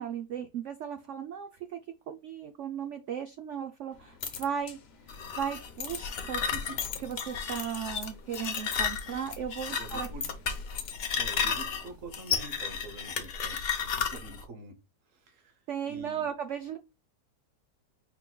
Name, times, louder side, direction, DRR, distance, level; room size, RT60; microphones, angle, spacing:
voice 1, 0.0-1.8 2.1-4.8 5.1-6.4 7.0-10.1 15.7-16.8, right 8 dB, 90° right, 0.6 m, -36 dB
sound 1, 3.9-12.0, left 7 dB, 75° left, 1.5 m, -43 dB
sound 2, 5.1-14.4, left 6 dB, 55° left, 0.7 m, -33 dB
voice 2, 9.6-10.3 11.2-14.7 15.3-15.5 15.8-16.3, right 3 dB, 55° right, 1.1 m, -46 dB
4.7 x 3.8 x 2.2 m
omnidirectional pair, 1.9 m